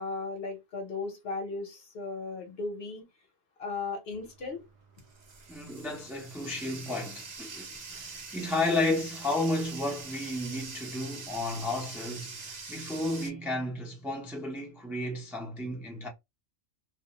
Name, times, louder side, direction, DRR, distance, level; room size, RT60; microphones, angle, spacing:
voice 1, 0.0-3.0 3.6-4.6, left 3 dB, 55° left, 0.9 m, -36 dB
Bathtub (filling or washing), 4.1-13.3, right 4 dB, 45° right, 0.6 m, -44 dB
voice 2, 5.5-16.1, left 2 dB, 5° right, 0.4 m, -32 dB
2.5 x 2.0 x 2.8 m
omnidirectional pair, 1.4 m